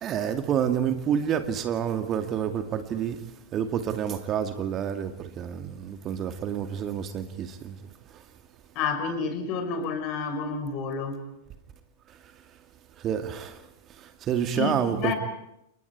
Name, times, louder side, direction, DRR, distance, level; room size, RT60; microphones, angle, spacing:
voice 1, 0.0-3.2 3.5-5.1 5.4-7.7 13.0-13.5 14.3-15.1, right 9 dB, 30° right, 2.2 m, -28 dB
voice 2, 8.7-11.3 14.5-15.2, left 5 dB, 40° left, 5.3 m, -29 dB
30.0 x 29.5 x 4.7 m
figure-of-eight pair, 90°, 0 cm